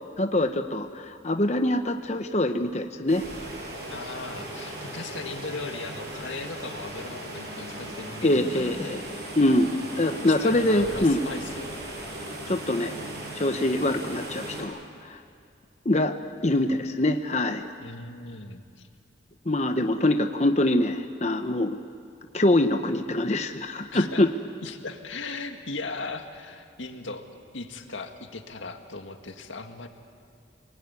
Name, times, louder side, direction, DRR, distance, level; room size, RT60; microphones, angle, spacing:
voice 1, 0.2-3.2 8.2-9.0 9.4-11.2 12.5-12.9 13.3-15.2 15.8-16.2 16.4-17.7 19.5-21.8 22.3-24.3, left 1 dB, 35° left, 6 dB, 0.9 m, -24 dB
sound 1, 3.1-14.6, right 1 dB, 55° right, 7.4 m, -37 dB
voice 2, 3.9-9.0 10.2-11.7 16.5-16.8 17.8-18.9 23.9-24.2 24.6-27.2 27.5-29.9, left 3 dB, 85° left, 5 dB, 2.0 m, -38 dB
28.5 x 20.5 x 9.7 m, 2.3 s
head